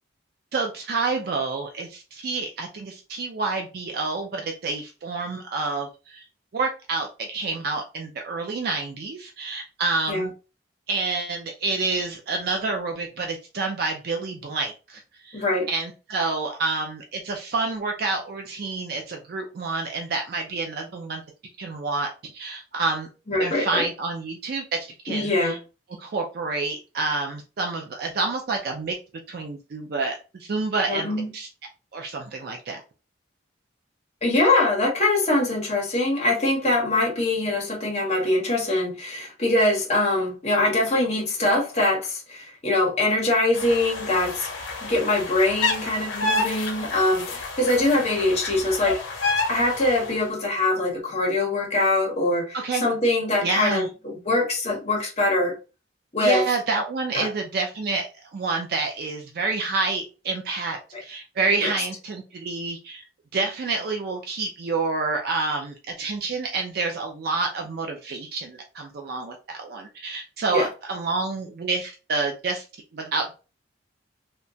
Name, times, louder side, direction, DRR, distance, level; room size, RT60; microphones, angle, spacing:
voice 1, 0.5-6.3 6.5-10.3 10.9-21.2 21.6-23.1 23.4-25.6 26.0-29.0 29.3-31.5 31.9-32.8 52.5-52.8 53.4-53.9 56.2-63.0 63.3-72.7 72.9-73.4, right 3 dB, 50° right, 0.3 m, -28 dB
voice 2, 15.3-15.7 23.3-23.9 25.1-25.6 30.9-31.3 34.2-55.5 56.1-56.4 57.1-57.3 60.9-61.0 61.6-61.7 70.5-70.7, left 2 dB, 35° left, 0.8 m, -23 dB
sound 1, 43.5-50.2, left 3 dB, 80° left, 0.7 m, -29 dB
2.8 x 2.2 x 2.6 m
head